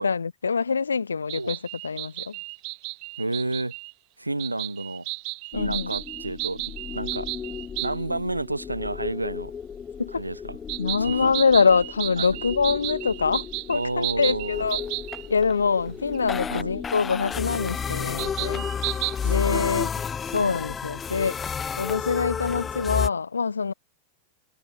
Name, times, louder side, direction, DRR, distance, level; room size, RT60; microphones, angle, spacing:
voice 1, 0.0-2.4 5.5-5.9 10.0-10.2 10.8-14.9 15.3-18.7 19.2-19.9 20.3-21.4 21.8-23.7, left 5 dB, 75° left, 1.0 m, -24 dB
sound 1, 1.3-3.9 4.4-7.9 10.7-15.3 16.1-16.2 18.2-19.2, right 37 dB, 45° right, 1.2 m, -33 dB
voice 2, 3.2-3.7 4.2-5.1 5.5-7.3 7.8-9.5 10.1-10.6 11.0-11.3 12.2-12.3 13.7-14.6 16.5-16.7 19.2-19.9 20.3-20.6, right 2 dB, 85° right, 1.2 m, -31 dB
sound 2, 5.5-23.1, left 6 dB, 20° left, 0.7 m, -33 dB
figure-of-eight pair, 90°, 0 cm